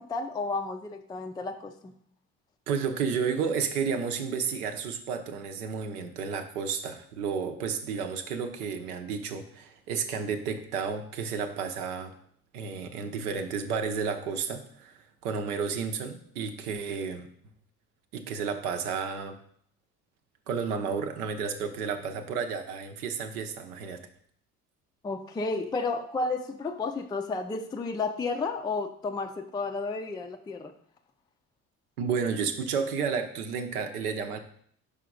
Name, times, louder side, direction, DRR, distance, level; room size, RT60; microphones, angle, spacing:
voice 1, 0.0-1.9 25.0-30.7, left 3 dB, 10° left, 5 dB, 0.4 m, -32 dB
voice 2, 2.7-12.1 12.5-15.0 15.2-17.3 18.1-19.4 20.5-24.0 32.0-34.4, right 6 dB, 80° right, 6 dB, 0.8 m, -31 dB
5.7 x 4.9 x 3.8 m, 0.62 s
figure-of-eight pair, 55°, 45 cm